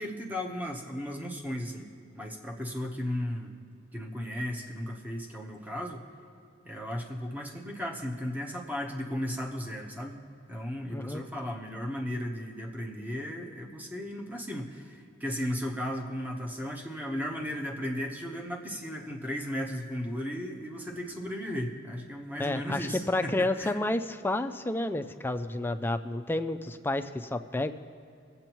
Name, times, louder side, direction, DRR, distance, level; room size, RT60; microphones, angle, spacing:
voice 1, 0.0-1.9 2.1-3.5 3.9-6.0 6.6-10.2 10.5-23.7, equal, 10° right, 1 dB, 0.9 m, -35 dB
voice 2, 10.9-11.2 22.4-27.7, left 2 dB, 10° left, 8 dB, 0.4 m, -30 dB
21.5 x 7.9 x 3.0 m, 2.5 s
head